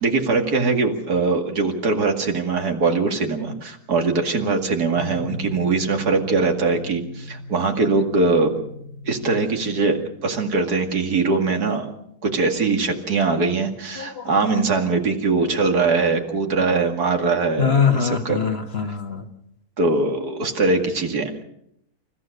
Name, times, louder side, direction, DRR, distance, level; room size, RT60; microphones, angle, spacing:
voice 1, 0.0-8.5 9.0-10.0 10.2-11.9 12.2-18.5 19.8-21.3, right 3 dB, 90° right, 4 dB, 2.8 m, -21 dB
sound 1, 4.9-10.0, left 2 dB, 75° left, 2.7 m, -37 dB
voice 2, 14.0-14.3 15.4-15.5 15.8-15.9 17.6-19.3, left 6 dB, 45° left, 6 dB, 1.7 m, -23 dB
28.5 x 15.0 x 6.7 m, 0.76 s
omnidirectional pair, 1.6 m